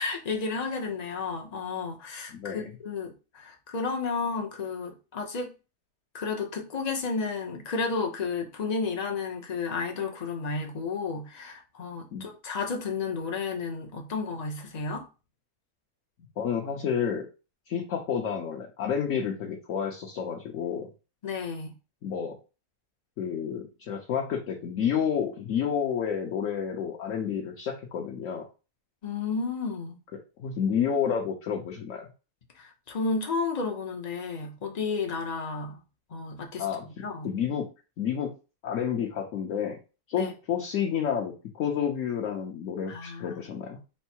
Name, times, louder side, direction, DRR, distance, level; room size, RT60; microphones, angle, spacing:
voice 1, 0.0-5.5 6.1-15.0 21.2-21.7 29.0-30.0 32.6-35.8 36.1-37.3 40.1-40.3 42.9-43.4, left 4 dB, 40° left, 0.6 m, -32 dB
voice 2, 2.3-2.7 12.1-12.3 16.4-17.3 17.7-20.9 22.0-22.4 23.2-28.4 30.4-32.1 36.6-36.8 37.2-37.6 38.0-38.3 38.6-39.8 40.1-43.8, left 8 dB, 60° left, 1.0 m, -30 dB
4.5 x 2.0 x 4.3 m
omnidirectional pair, 1.7 m